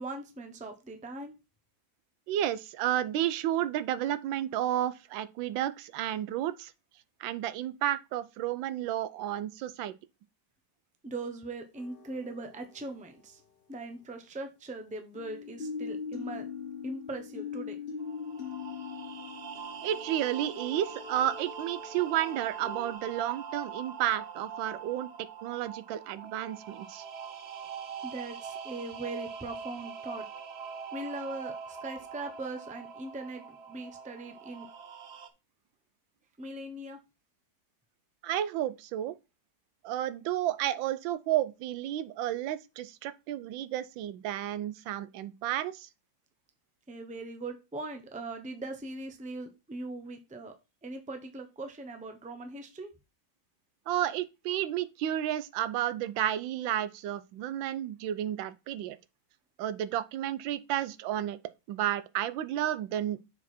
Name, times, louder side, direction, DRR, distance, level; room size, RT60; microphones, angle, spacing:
voice 1, 0.0-1.3 11.0-13.4 13.7-16.4 16.8-17.8 28.0-30.3 30.9-34.7 36.4-37.0 46.9-50.5 50.8-52.9, right 2 dB, 10° right, 0.5 m, -40 dB
voice 2, 2.3-6.7 7.2-9.9 19.8-25.1 25.4-27.0 38.2-39.1 39.8-45.9 53.9-59.0 59.6-61.4 61.7-63.2, right 12 dB, 90° right, 1.3 m, -32 dB
sound 1, 11.8-12.6 15.1-22.9, left 6 dB, 35° left, 1.1 m, -41 dB
sound 2, 18.0-35.3, right 6 dB, 65° right, 0.6 m, -43 dB
6.8 x 4.8 x 4.3 m
omnidirectional pair, 2.1 m